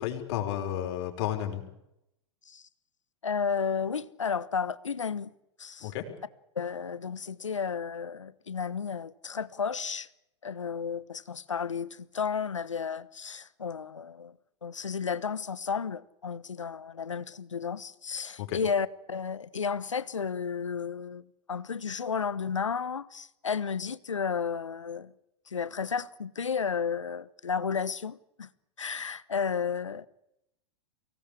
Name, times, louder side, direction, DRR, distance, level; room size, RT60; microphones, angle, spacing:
voice 1, 0.0-1.6 5.8-6.0 18.4-18.6, left 11 dB, 55° left, 5.3 m, -32 dB
voice 2, 3.2-5.3 5.6-5.9 6.6-10.1 10.4-14.3 14.6-21.2 21.5-25.1 25.5-28.5 28.8-30.1, left 6 dB, 90° left, 1.1 m, -32 dB
24.0 x 18.5 x 8.7 m
hypercardioid pair, 100°, 16 cm